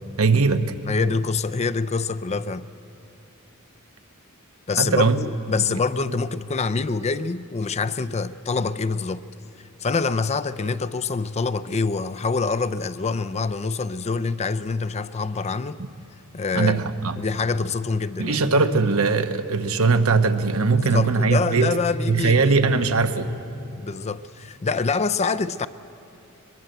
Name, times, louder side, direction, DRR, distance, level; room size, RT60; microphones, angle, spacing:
voice 1, 0.2-0.7 4.8-5.2 16.5-17.2 18.2-21.7 22.1-23.3, right 4 dB, 80° right, 1.1 m, -20 dB
voice 2, 0.9-2.7 4.7-9.2 9.8-15.8 16.3-16.8 17.2-18.4 20.7-22.6 23.8-25.7, left 4 dB, 30° left, 0.5 m, -25 dB
22.0 x 22.0 x 7.9 m
head